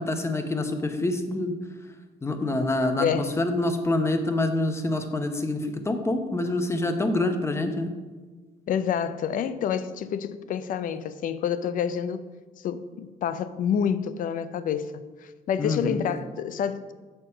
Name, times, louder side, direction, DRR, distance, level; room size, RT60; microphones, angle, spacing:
voice 1, 0.0-1.6 2.2-7.9 15.6-16.0, left 2 dB, 15° left, 0.8 m, -26 dB
voice 2, 3.0-3.3 8.7-12.2 12.6-16.9, left 8 dB, 55° left, 0.5 m, -28 dB
7.0 x 4.4 x 5.5 m
cardioid pair, 110°, 17 cm